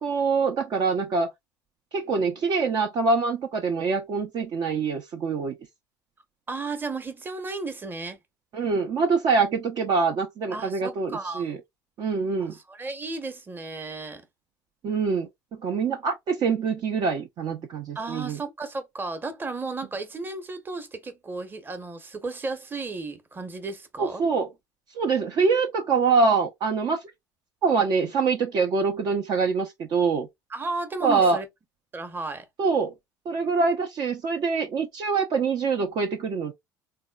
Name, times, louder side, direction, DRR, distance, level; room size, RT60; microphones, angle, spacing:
voice 1, 0.0-1.3 1.9-5.5 8.5-11.6 12.0-12.5 14.8-15.3 15.6-18.4 24.0-24.5 25.0-27.0 27.6-30.3 31.0-31.4 32.6-32.9 33.3-36.5, right 4 dB, 45° right, 0.6 m, -24 dB
voice 2, 6.5-8.2 10.5-11.5 12.4-14.2 17.9-24.2 30.5-31.5 31.9-32.5, right 3 dB, 20° right, 0.9 m, -34 dB
3.5 x 2.2 x 2.2 m
hypercardioid pair, 65°, 10 cm